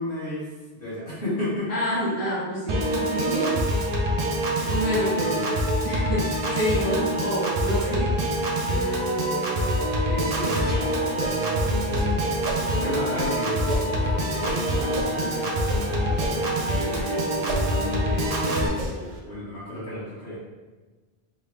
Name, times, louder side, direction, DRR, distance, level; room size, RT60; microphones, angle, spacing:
voice 1, 0.0-1.7 4.8-5.6 10.0-12.2 12.8-20.4, left 1 dB, 55° left, -9 dB, 1.4 m, -34 dB
voice 2, 1.7-3.6 4.7-5.3 5.8-8.1, equal, 15° left, -8 dB, 0.8 m, -27 dB
Piano / Organ, 2.7-18.7, equal, 50° right, 0.5 m, -25 dB
sound 1, 10.6-12.7 13.1-15.8 16.1-17.1 17.4-19.2, right 1 dB, 85° right, 0.9 m, -36 dB
3.6 x 2.1 x 3.2 m, 1.3 s
omnidirectional pair, 1.1 m